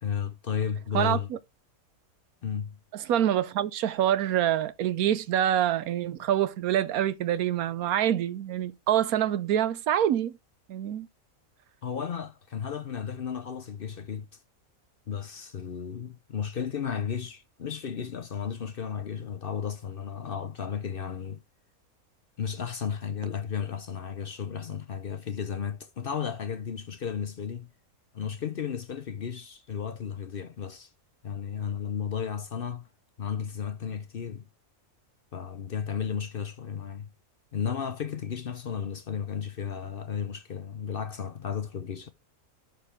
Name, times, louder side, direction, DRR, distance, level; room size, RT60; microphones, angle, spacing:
voice 1, 0.0-1.3 2.4-2.8 11.8-14.3 15.1-21.4 22.4-27.7 28.1-30.9 31.2-32.9 33.2-34.5 35.3-37.1 37.5-42.1, left 7 dB, 50° left, 0.7 m, -34 dB
voice 2, 0.9-1.4 2.9-10.4 10.7-11.1, right 11 dB, 80° right, 1.2 m, -26 dB
11.5 x 4.5 x 3.6 m
omnidirectional pair, 1.5 m